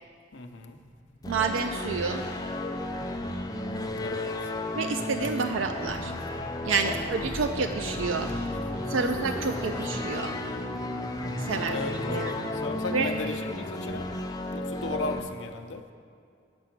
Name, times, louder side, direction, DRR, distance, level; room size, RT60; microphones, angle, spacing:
voice 1, 0.3-0.8 4.0-4.4 6.8-7.1 11.4-14.1 14.5-15.8, left 3 dB, 65° left, 6 dB, 0.6 m, -35 dB
Motorcycle, 0.8-13.3, equal, 30° right, 2.2 m, -42 dB
sound 1, 1.2-15.2, left 2 dB, 20° left, 0.5 m, -34 dB
voice 2, 1.3-2.2 4.7-6.1 6.6-8.3 8.9-10.4 11.4-11.8 12.0-12.3 12.9-13.1, right 5 dB, 85° right, 6 dB, 0.4 m, -29 dB
8.7 x 5.7 x 5.9 m, 2.3 s
head